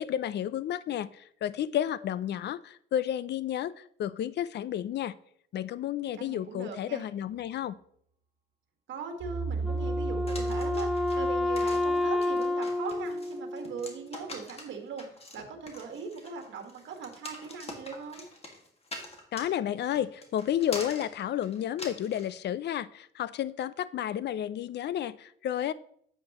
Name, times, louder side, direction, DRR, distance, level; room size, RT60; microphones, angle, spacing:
voice 1, 0.0-5.1 5.5-7.8 19.3-25.7, left 10 dB, 60° left, 18 dB, 0.5 m, -31 dB
voice 2, 6.2-7.0 8.9-15.1 15.3-18.3, right 5 dB, 70° right, 5 dB, 1.7 m, -40 dB
sound 1, 9.2-12.3, right 3 dB, 45° right, 1.8 m, -35 dB
Wind instrument woodwind instrument, 9.6-14.1, left 2 dB, ahead, 0.9 m, -30 dB
sound 2, 10.3-22.3, left 2 dB, 30° left, 1.9 m, -44 dB
9.6 x 7.9 x 3.0 m, 0.65 s
cardioid pair, 90°, 20 cm